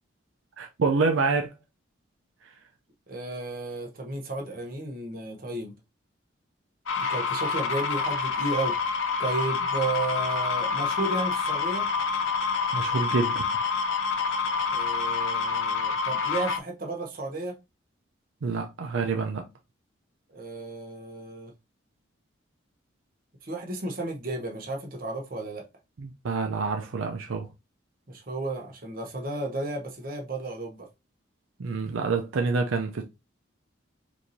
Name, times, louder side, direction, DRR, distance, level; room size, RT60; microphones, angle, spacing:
voice 1, 0.6-1.5 12.7-13.5 18.4-19.5 26.0-27.5 31.6-33.0, right 4 dB, 80° right, 0.5 m, -27 dB
voice 2, 3.1-5.7 7.1-8.7 9.2-11.9 14.7-17.5 20.3-21.5 23.4-25.6 28.1-30.9, right 2 dB, 45° right, 0.9 m, -33 dB
sound 1, 6.9-16.6, left 5 dB, 75° left, 0.5 m, -27 dB
4.6 x 2.6 x 2.6 m
head